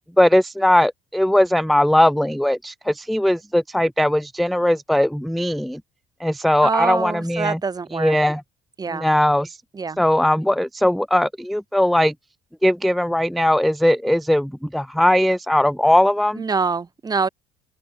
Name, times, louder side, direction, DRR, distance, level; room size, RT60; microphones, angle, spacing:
voice 1, 0.2-5.8 6.2-7.6 7.9-8.4 8.9-9.6 10.0-12.1 12.6-16.4, left 1 dB, ahead, 0.4 m, -19 dB
voice 2, 6.6-8.2 8.8-9.1 9.7-10.0 16.4-17.3, right 5 dB, 25° right, 0.8 m, -24 dB
open air
cardioid pair, 110°, 17 cm